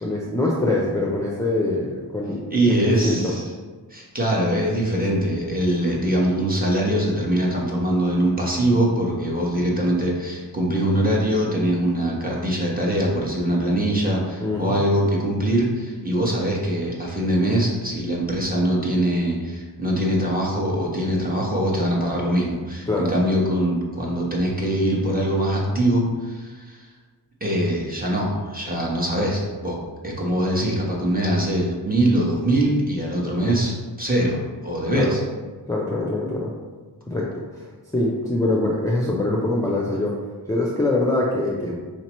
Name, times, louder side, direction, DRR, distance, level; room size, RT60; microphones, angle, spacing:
voice 1, 0.0-3.3 14.4-14.8 22.9-23.1 34.9-35.1 35.7-36.5 37.1-37.3 37.5-37.6 37.9-40.1 40.5-41.7, left 2 dB, 10° left, -4 dB, 0.6 m, -23 dB
voice 2, 2.5-3.4 3.9-26.8 27.4-29.8 30.0-35.2, right 1 dB, 20° right, -3 dB, 1.1 m, -22 dB
4.5 x 2.8 x 3.0 m, 1.4 s
cardioid pair, 50°, 39 cm